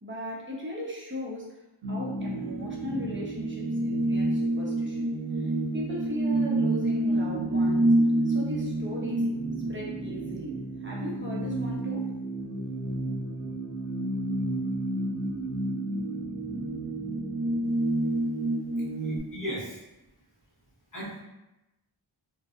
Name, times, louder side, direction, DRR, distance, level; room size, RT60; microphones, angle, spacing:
voice 1, 0.0-1.5 1.9-5.1 5.4-7.9 8.2-9.3 9.7-12.1, left 1 dB, 25° right, -4 dB, 0.7 m, -38 dB
sound 1, 1.8-19.2, right 1 dB, 85° right, 0.6 m, -29 dB
voice 2, 18.9-19.8 20.9-21.2, equal, 40° left, -7 dB, 1.2 m, -36 dB
2.6 x 2.2 x 2.4 m, 0.96 s
wide cardioid pair, 50°, 49 cm